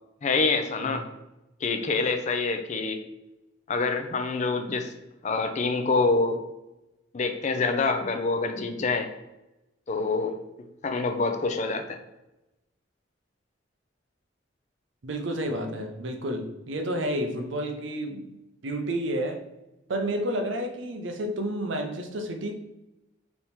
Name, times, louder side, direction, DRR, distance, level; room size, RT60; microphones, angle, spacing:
voice 1, 0.2-1.0 1.6-3.0 3.7-4.9 5.2-6.4 7.1-9.1 9.9-10.3 10.8-12.0, left 3 dB, 40° left, 7 dB, 0.4 m, -26 dB
voice 2, 15.0-18.3 18.6-19.4 19.9-22.5, right 1 dB, 75° right, 5 dB, 0.6 m, -30 dB
3.5 x 2.9 x 4.2 m, 0.96 s
head